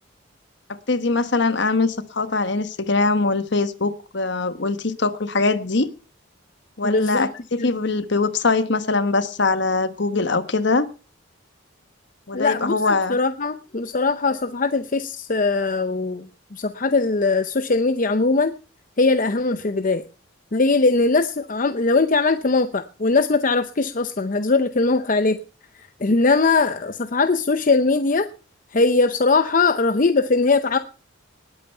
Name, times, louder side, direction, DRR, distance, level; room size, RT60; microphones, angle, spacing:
voice 1, 0.9-5.9 6.8-10.9 12.3-13.2, left 3 dB, 60° left, 12 dB, 1.2 m, -22 dB
voice 2, 6.8-7.3 7.6-7.7 12.3-12.7 13.1-16.3 16.5-18.5 19.0-20.0 20.5-25.4 26.0-28.3 28.7-30.8, left 3 dB, 40° left, 10 dB, 0.7 m, -20 dB
19.0 x 8.8 x 5.6 m, 0.36 s
head